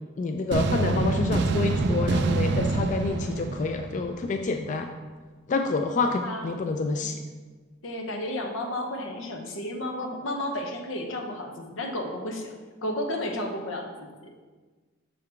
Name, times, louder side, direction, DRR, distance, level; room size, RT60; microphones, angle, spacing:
voice 1, 0.2-4.9 5.5-7.2, left 3 dB, 40° left, 5 dB, 0.3 m, -28 dB
sound 1, 0.5-4.5, right 3 dB, 60° right, 0.4 m, -26 dB
voice 2, 6.1-6.6 6.9-7.1 7.8-12.6 12.8-14.3, left 1 dB, 85° left, 3 dB, 0.8 m, -33 dB
6.3 x 3.9 x 4.5 m, 1.4 s
head